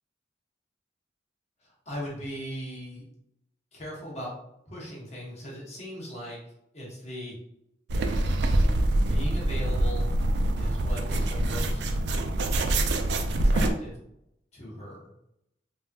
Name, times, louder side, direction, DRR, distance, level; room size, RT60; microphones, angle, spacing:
voice 1, 1.6-3.1 3.7-4.3 4.7-6.4 6.7-7.4 9.1-10.1 10.5-12.0 13.4-14.0 14.5-15.1, equal, 35° left, -4 dB, 1.0 m, -38 dB
sound 1, 7.9-13.7, right 1 dB, 65° right, 0.3 m, -25 dB
3.4 x 2.2 x 2.7 m, 0.80 s
head